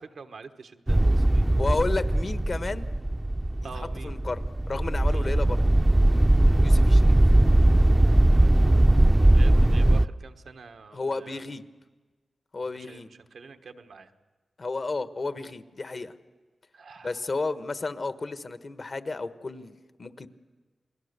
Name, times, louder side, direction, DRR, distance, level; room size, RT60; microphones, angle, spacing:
voice 1, 0.0-1.4 3.6-4.1 5.1-5.3 9.2-11.5 12.6-14.1 16.7-17.2, right 4 dB, 80° right, 7 dB, 1.3 m, -46 dB
sound 1, 0.9-10.1, right 1 dB, 20° right, 0.6 m, -20 dB
voice 2, 1.5-2.9 4.0-5.6 6.6-7.2 10.9-11.6 12.5-13.1 14.6-16.1 17.0-20.3, left 3 dB, 55° left, 10 dB, 1.3 m, -32 dB
29.0 x 20.5 x 6.8 m, 1.3 s
cardioid pair, 40°, 0 cm